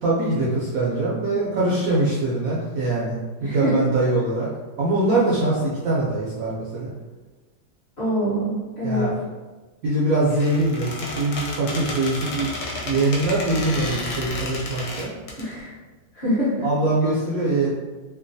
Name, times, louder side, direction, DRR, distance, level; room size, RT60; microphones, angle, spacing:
voice 1, 0.0-4.5 4.8-6.9 8.8-9.1 9.8-12.5 12.8-15.1 16.6-17.7, right 2 dB, 70° right, -6 dB, 0.8 m, -23 dB
voice 2, 3.4-3.9 8.0-9.1 15.4-15.7 16.1-16.7, equal, 45° left, -9 dB, 1.0 m, -24 dB
Squeak, 10.3-15.4, left 2 dB, 75° left, 1.2 m, -31 dB
3.0 x 2.2 x 2.6 m, 1.2 s
omnidirectional pair, 2.0 m